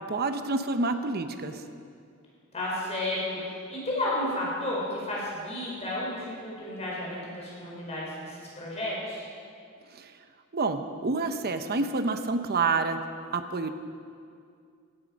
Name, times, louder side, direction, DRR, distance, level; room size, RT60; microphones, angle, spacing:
voice 1, 0.1-1.6 9.9-10.1 10.5-13.0 13.3-13.7, right 3 dB, 45° right, 8 dB, 0.9 m, -28 dB
voice 2, 2.5-9.3, left 1 dB, 30° left, -5 dB, 4.5 m, -32 dB
17.0 x 12.5 x 5.3 m, 2.3 s
head